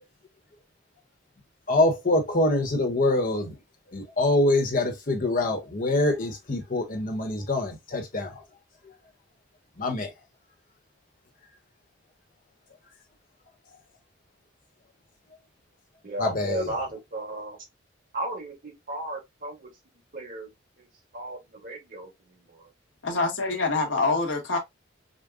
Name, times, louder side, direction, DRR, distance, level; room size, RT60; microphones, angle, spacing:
voice 1, 1.7-3.5 3.9-8.4 9.8-10.1 16.2-16.7, left 2 dB, 45° left, 1.1 m, -25 dB
voice 2, 16.0-17.6 18.1-19.7 20.1-20.5 21.1-22.1 22.5-22.7, right 1 dB, 45° right, 1.7 m, -35 dB
voice 3, 23.0-24.6, left 3 dB, 70° left, 1.3 m, -25 dB
5.1 x 2.2 x 2.3 m
head